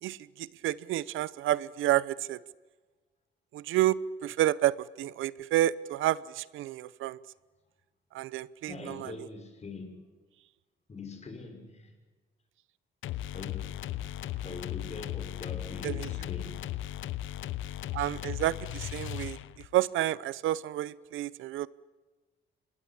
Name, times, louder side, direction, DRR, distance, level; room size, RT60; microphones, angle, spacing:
voice 1, 0.0-2.4 3.5-7.2 8.1-9.3 15.8-16.1 17.9-21.7, right 14 dB, 85° right, 0.8 m, -30 dB
voice 2, 8.7-10.0 10.9-11.9 13.3-17.8, left 3 dB, 35° left, 6.0 m, -44 dB
sound 1, 13.0-19.8, left 13 dB, 80° left, 0.8 m, -37 dB
26.0 x 21.0 x 8.7 m
cardioid pair, 90°, 20 cm